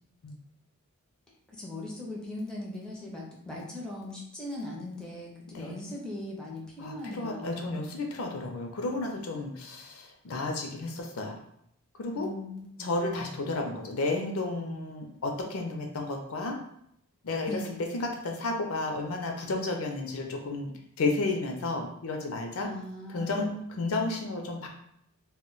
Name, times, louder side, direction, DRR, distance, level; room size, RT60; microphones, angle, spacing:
voice 1, 1.6-7.7 12.2-12.9 17.5-17.8 22.6-23.6, left 1 dB, 5° left, -3 dB, 0.5 m, -39 dB
voice 2, 6.8-11.4 12.0-12.3 12.8-16.6 17.2-20.7 21.0-22.7 23.1-24.7, left 2 dB, 70° left, 2 dB, 0.5 m, -32 dB
2.2 x 2.1 x 3.8 m, 0.73 s
head